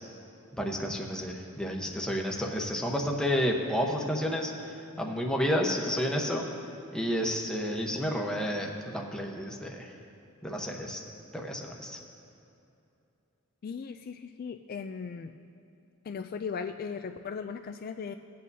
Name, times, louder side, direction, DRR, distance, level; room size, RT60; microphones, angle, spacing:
voice 1, 0.6-4.5 5.0-6.4 6.9-9.9 10.4-11.0 11.3-12.0, equal, 5° left, 0 dB, 1.0 m, -30 dB
voice 2, 13.6-15.3 16.0-18.1, left 6 dB, 45° left, 7 dB, 0.3 m, -37 dB
19.5 x 8.4 x 2.7 m, 2.7 s
head